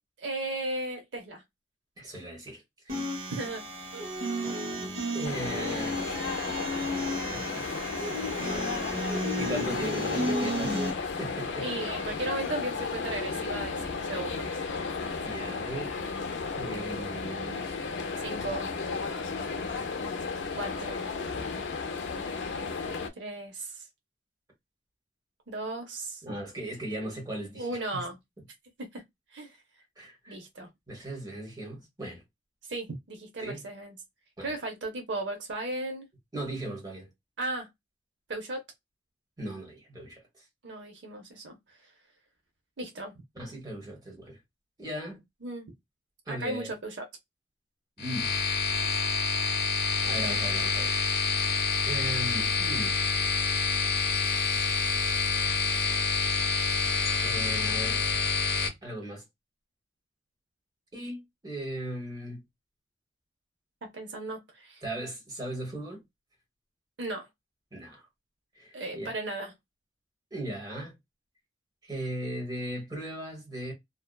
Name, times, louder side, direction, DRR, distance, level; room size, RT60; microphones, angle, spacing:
voice 1, 0.2-1.4 3.3-3.6 11.6-14.5 18.2-18.8 20.6-21.1 23.2-23.9 25.5-26.2 27.6-28.2 28.9-29.0 29.3-29.6 30.3-30.7 32.7-34.0 34.4-36.1 37.4-37.7 38.3-38.6 40.6-41.6 42.8-43.1 45.4-45.7 46.3-47.0 63.8-64.8 67.0-67.3 68.7-69.5, right 2 dB, 80° right, 0.7 m, -36 dB
voice 2, 2.0-3.1 5.1-6.0 7.3-7.7 9.2-11.7 15.2-16.0 16.4-17.7 26.2-28.1 30.0-30.3 30.9-32.2 33.4-33.7 34.4-34.6 36.3-37.1 39.4-40.4 43.3-44.4 44.8-45.2 46.3-46.7 48.0-48.3 50.0-51.0 51.8-53.0 57.2-58.0 58.8-59.2 60.9-62.4 64.8-66.0 67.7-68.1 68.6-69.1 70.3-70.9 71.8-73.7, right 1 dB, 20° right, 1.1 m, -38 dB
sound 1, 2.9-10.9, equal, 60° right, 1.0 m, -33 dB
sound 2, 5.2-23.1, left 4 dB, 85° left, 0.5 m, -34 dB
sound 3, 48.0-58.7, left 5 dB, 55° left, 0.8 m, -27 dB
2.6 x 2.1 x 2.2 m
head